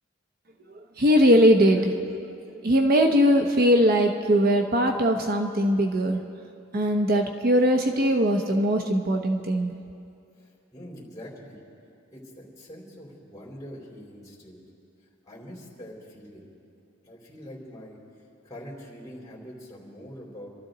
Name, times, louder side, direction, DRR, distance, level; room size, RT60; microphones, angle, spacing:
voice 1, 1.0-2.3 2.6-6.2 6.7-9.7, equal, 50° right, 4 dB, 0.8 m, -21 dB
voice 2, 10.4-11.6 12.1-14.6 15.2-16.5 17.0-18.0 18.4-20.6, equal, 20° left, -5 dB, 3.9 m, -44 dB
27.0 x 13.0 x 3.9 m, 2.6 s
head